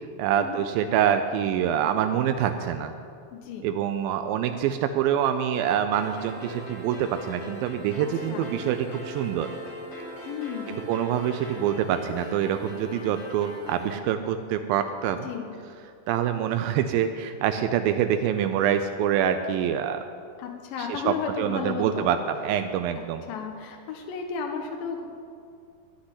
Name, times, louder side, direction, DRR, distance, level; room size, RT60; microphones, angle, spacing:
voice 1, 0.2-2.9 3.6-9.5 10.7-15.3 16.1-20.0 20.8-23.2, right 9 dB, 85° right, 8 dB, 2.4 m, -26 dB
voice 2, 3.3-3.7 8.3-8.5 10.3-10.8 15.2-15.5 20.4-22.2 22.9-23.0 23.3-25.1, left 6 dB, 80° left, 3 dB, 2.8 m, -33 dB
sound 1, 5.9-13.9, equal, 40° left, 3.6 m, -40 dB
13.0 x 6.3 x 9.8 m, 2.3 s
omnidirectional pair, 4.1 m